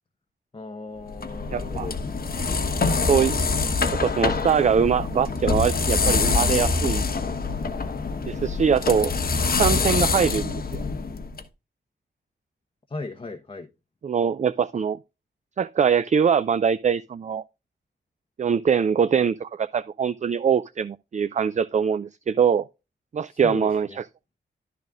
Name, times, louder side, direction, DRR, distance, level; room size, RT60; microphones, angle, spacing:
voice 1, 0.5-2.0 12.9-13.7 23.3-24.0, left 3 dB, 30° left, 1.0 m, -36 dB
sound 1, 1.1-11.4, left 4 dB, 50° left, 1.2 m, -25 dB
voice 2, 1.5-1.9 3.1-3.4 4.0-7.1 8.3-9.1 9.5-10.8 14.0-15.0 15.6-17.4 18.4-22.7 23.1-24.0, right 7 dB, 40° right, 0.4 m, -23 dB
12.0 x 4.0 x 3.6 m
wide cardioid pair, 130°, 19 cm